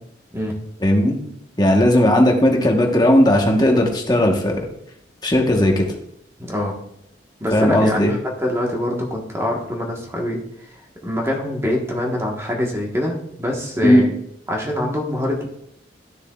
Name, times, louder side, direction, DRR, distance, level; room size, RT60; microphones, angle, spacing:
voice 1, 0.8-1.2 1.6-4.7 5.2-5.9 7.5-8.2 13.8-14.0, left 1 dB, 20° left, 2 dB, 1.1 m, -16 dB
voice 2, 6.4-6.8 7.4-10.4 10.7-10.8 11.0-14.1 14.5-15.5, left 1 dB, 15° right, -1 dB, 1.3 m, -24 dB
12.0 x 6.7 x 2.3 m, 0.74 s
head